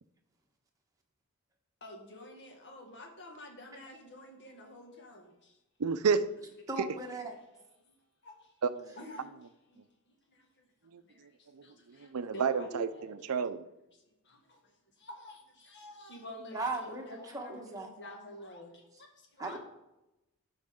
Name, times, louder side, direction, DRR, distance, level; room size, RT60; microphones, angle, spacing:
voice 1, 1.8-5.6 8.2-8.5 9.0-9.3 9.7-9.8 10.3-10.7 11.0-13.2 14.2-14.6 15.0-19.6, left 1 dB, 50° left, 1 dB, 1.8 m, -49 dB
voice 2, 5.8-6.2 6.8-6.9 8.6-8.9 10.9-13.6, right 5 dB, 80° right, 12 dB, 0.6 m, -31 dB
voice 3, 6.7-7.4 16.3-17.9 19.4-19.6, right 2 dB, 15° right, 1 dB, 1.2 m, -38 dB
11.5 x 5.8 x 3.7 m, 0.93 s
head